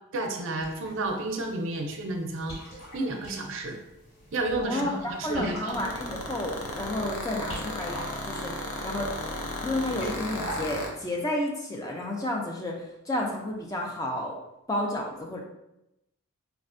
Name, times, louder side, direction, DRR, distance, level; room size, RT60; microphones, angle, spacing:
voice 1, 0.1-2.5 2.9-3.7 4.3-5.8, right 2 dB, 60° right, 3 dB, 0.4 m, -31 dB
sound 1, 0.5-11.1, equal, 60° left, 1.4 m, -45 dB
voice 2, 4.6-8.5 8.8-9.1 9.6-14.4 14.7-15.4, left 1 dB, 15° left, -1 dB, 0.3 m, -31 dB
sound 2, 5.7-10.9, left 2 dB, 85° left, 0.6 m, -34 dB
4.1 x 2.1 x 2.5 m, 0.87 s
head